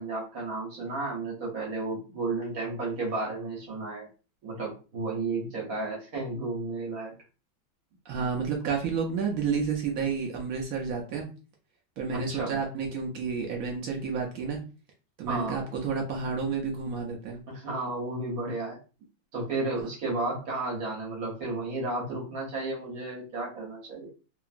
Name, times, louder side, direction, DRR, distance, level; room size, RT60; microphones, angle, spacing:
voice 1, 0.0-4.1 4.4-7.1 12.1-12.5 15.3-15.6 17.5-18.8 19.3-24.1, right 2 dB, 55° right, -3 dB, 1.3 m, -33 dB
voice 2, 8.1-11.3 12.0-14.6 15.2-17.4, right 5 dB, 75° right, 1 dB, 0.8 m, -30 dB
2.9 x 2.5 x 2.4 m, 0.34 s
omnidirectional pair, 2.0 m